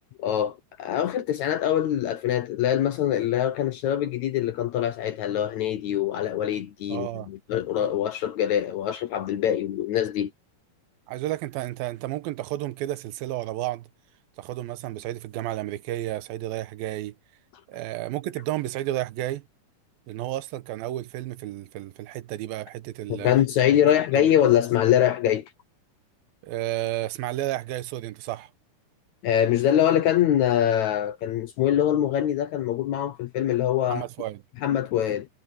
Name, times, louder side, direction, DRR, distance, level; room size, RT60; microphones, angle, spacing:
voice 1, 0.2-10.3 23.1-25.5 29.2-34.1 34.6-35.3, left 11 dB, 70° left, 1.8 m, -24 dB
voice 2, 6.9-7.3 11.1-13.9 14.4-17.2 17.7-19.4 20.1-23.3 23.8-24.3 26.4-28.5 33.9-34.4, right 15 dB, 90° right, 2.7 m, -32 dB
omnidirectional pair, 4.2 m